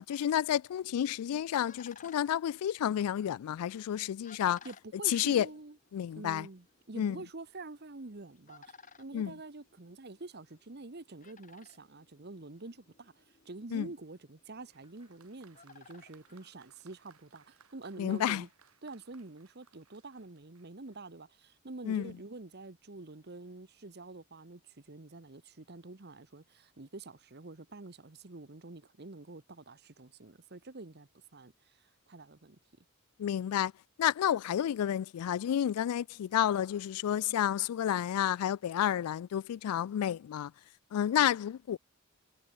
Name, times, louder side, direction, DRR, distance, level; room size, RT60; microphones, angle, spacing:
voice 1, 0.0-4.6 5.1-5.5 5.9-6.5 7.0-7.2 9.1-9.3 13.7-13.9 18.0-18.4 21.9-22.1 33.2-33.7 34.0-40.5 40.9-41.8, left 10 dB, 85° left, 0.3 m, -30 dB
sound 1, 1.2-17.2, left 5 dB, 35° left, 4.6 m, -60 dB
voice 2, 4.6-5.8 6.1-18.5 18.8-32.6, right 2 dB, 45° right, 1.1 m, -47 dB
Applause, 14.7-21.1, right 6 dB, 75° right, 4.7 m, -65 dB
head